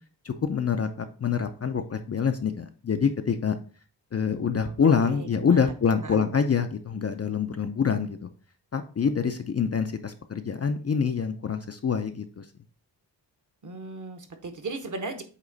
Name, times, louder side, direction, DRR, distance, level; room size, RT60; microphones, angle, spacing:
voice 1, 0.2-3.6 4.1-8.3 8.7-12.5, left 6 dB, 35° left, 7 dB, 0.4 m, -26 dB
voice 2, 5.0-5.7 6.0-6.2 13.6-15.2, right 3 dB, 45° right, 7 dB, 1.0 m, -37 dB
8.1 x 3.0 x 3.9 m, 0.39 s
wide cardioid pair, 150°, 43 cm